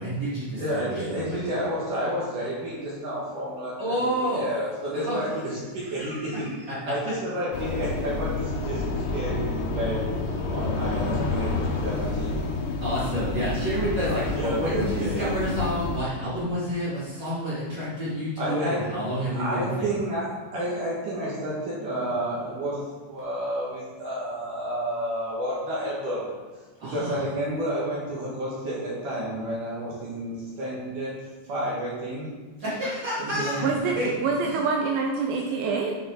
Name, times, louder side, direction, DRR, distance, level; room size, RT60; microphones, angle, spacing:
voice 1, 0.0-1.4 3.8-4.5 4.9-5.2 5.8-6.5 12.8-19.9 26.8-27.3 32.6-33.7 33.9-34.1 34.4-34.5, equal, 30° right, -10 dB, 2.5 m, -29 dB
voice 2, 0.6-4.0 4.2-6.5 6.9-10.0 10.5-12.4 14.1-15.3 18.4-18.8 19.3-26.3 26.8-31.1 31.5-32.3 33.2-33.6, right 1 dB, 55° right, -7 dB, 2.4 m, -30 dB
sound 1, 7.5-16.0, left 3 dB, 90° left, 4.1 m, -29 dB
voice 3, 33.6-36.0, right 4 dB, 80° right, 1 dB, 2.6 m, -26 dB
9.7 x 6.3 x 3.8 m, 1.3 s
omnidirectional pair, 5.8 m